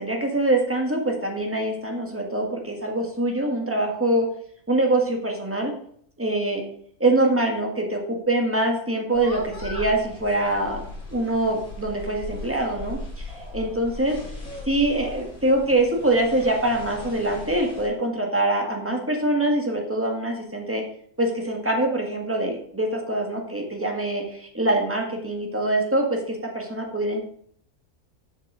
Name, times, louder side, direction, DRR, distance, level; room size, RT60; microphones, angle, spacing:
voice 1, 0.0-4.3 4.7-5.7 6.2-6.6 7.0-10.8 11.1-14.1 14.6-20.8 21.2-27.2, right 1 dB, 10° right, 1 dB, 1.6 m, -24 dB
sound 1, 9.1-17.9, left 2 dB, 75° left, 3.5 m, -38 dB
7.1 x 6.5 x 6.2 m, 0.64 s
omnidirectional pair, 1.5 m